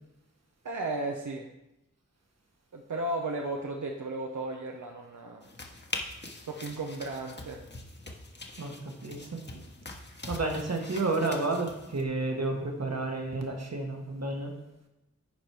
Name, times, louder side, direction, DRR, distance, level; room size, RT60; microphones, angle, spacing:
voice 1, 0.6-1.5 2.7-5.4 6.4-7.6, right 2 dB, 85° right, 1 dB, 0.7 m, -34 dB
sound 1, 5.4-12.0, left 2 dB, 35° left, 1.1 m, -43 dB
voice 2, 8.6-9.6 10.2-14.5, right 2 dB, 60° right, 2 dB, 1.5 m, -31 dB
10.0 x 4.4 x 4.7 m, 0.94 s
wide cardioid pair, 55°, 30 cm